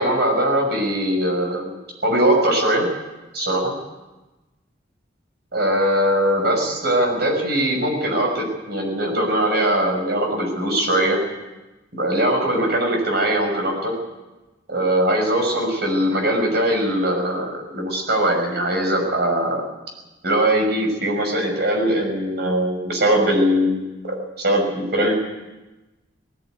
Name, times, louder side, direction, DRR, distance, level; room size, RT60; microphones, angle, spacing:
voice 1, 0.0-1.7 2.0-2.9 3.3-3.7 5.5-11.2 11.9-13.9 14.7-19.6 20.2-25.1, right 1 dB, 60° right, 3 dB, 6.4 m, -21 dB
19.5 x 18.0 x 9.5 m, 1.1 s
head